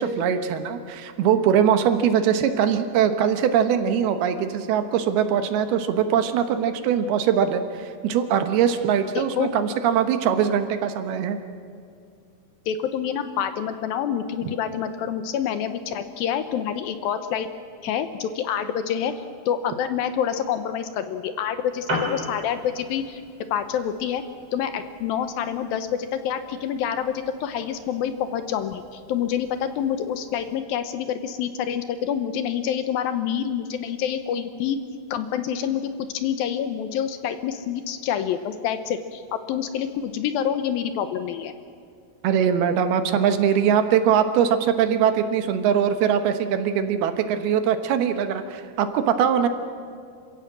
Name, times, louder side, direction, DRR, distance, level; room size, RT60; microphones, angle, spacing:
voice 1, 0.0-11.4 42.2-49.5, right 8 dB, 75° right, 8 dB, 3.0 m, -22 dB
voice 2, 9.2-9.5 12.7-17.5 17.8-19.1 19.5-23.2 23.5-24.2 24.5-34.8 35.1-39.2 39.5-41.5, left 9 dB, 75° left, 10 dB, 2.5 m, -27 dB
Piano, 21.6-30.6, equal, 30° right, 3.8 m, -39 dB
27.5 x 16.0 x 7.4 m, 2.3 s
omnidirectional pair, 4.6 m